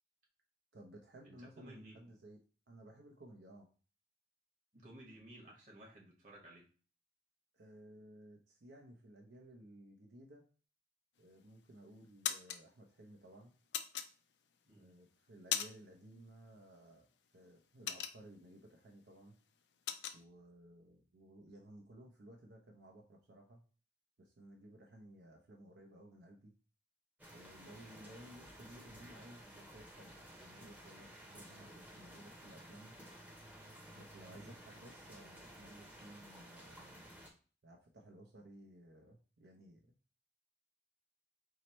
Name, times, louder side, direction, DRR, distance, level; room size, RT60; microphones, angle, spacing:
voice 1, 0.7-2.4 2.7-3.7 7.5-10.4 11.2-13.6 14.8-17.1 17.3-19.4 20.1-23.6 24.2-26.5 27.3-30.1 30.4-33.0 33.9-37.1 37.6-39.8, right 1 dB, 85° right, 1 dB, 0.6 m, -57 dB
voice 2, 1.2-2.0 4.7-6.7 14.7-14.9 34.3-34.6, right 1 dB, 45° right, -2 dB, 1.3 m, -56 dB
sound 1, 11.2-11.6 12.0-12.6 13.7-14.6 15.0-16.0 16.3-16.5 16.9-18.6 19.0-19.1 19.4-20.2, left 9 dB, 85° left, 0.4 m, -39 dB
sound 2, 27.2-37.3, equal, 10° right, 0.6 m, -55 dB
4.6 x 2.1 x 4.2 m, 0.38 s
head